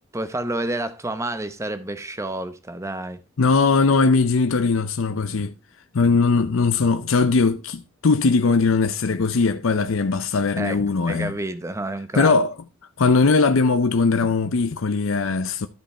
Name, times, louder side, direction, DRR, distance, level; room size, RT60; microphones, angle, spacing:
voice 1, 0.1-3.2 10.6-12.3, right 1 dB, 15° right, 0.8 m, -29 dB
voice 2, 3.4-5.5 5.9-11.3 12.1-12.5 13.0-15.7, left 4 dB, 70° left, 0.6 m, -20 dB
12.5 x 5.3 x 4.3 m
head